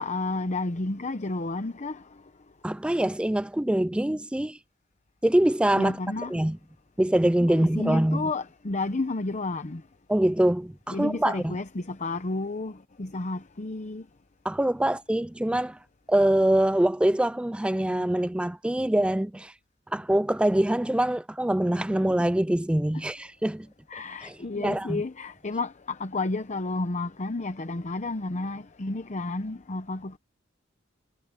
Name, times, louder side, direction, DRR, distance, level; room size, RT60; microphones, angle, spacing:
voice 1, 0.0-2.1 5.7-6.3 7.5-9.8 10.9-14.1 14.8-14.9 23.9-30.2, left 2 dB, 35° left, 0.8 m, -31 dB
voice 2, 2.6-4.6 5.2-6.0 6.3-6.6 7.0-8.3 10.1-11.6 14.4-15.8 16.1-19.5 19.9-23.7 24.2-25.0, right 1 dB, 5° right, 0.3 m, -24 dB
head